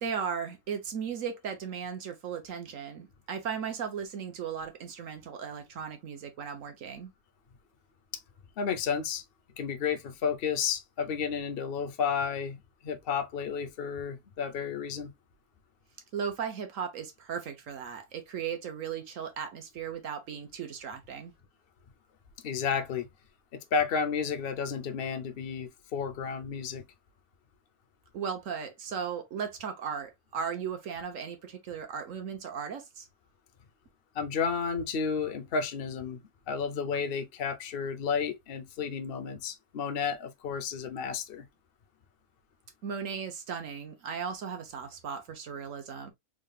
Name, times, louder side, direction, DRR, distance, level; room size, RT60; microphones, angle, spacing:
voice 1, 0.0-7.1 16.1-21.3 28.1-33.1 42.8-46.1, right 7 dB, 65° right, 1.2 m, -36 dB
voice 2, 8.6-9.2 9.6-15.1 22.4-23.1 23.5-26.8 34.1-41.4, left 6 dB, 50° left, 0.8 m, -32 dB
3.7 x 3.5 x 2.3 m
omnidirectional pair, 1.5 m